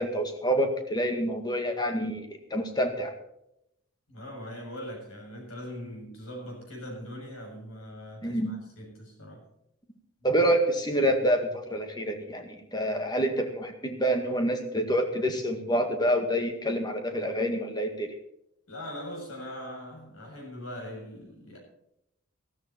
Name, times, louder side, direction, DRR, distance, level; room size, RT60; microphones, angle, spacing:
voice 1, 0.0-3.1 8.2-8.5 10.2-18.1, equal, 20° left, 5 dB, 2.0 m, -27 dB
voice 2, 4.1-9.4 18.7-21.6, equal, 90° left, 1 dB, 7.3 m, -41 dB
15.0 x 13.5 x 4.4 m, 0.78 s
head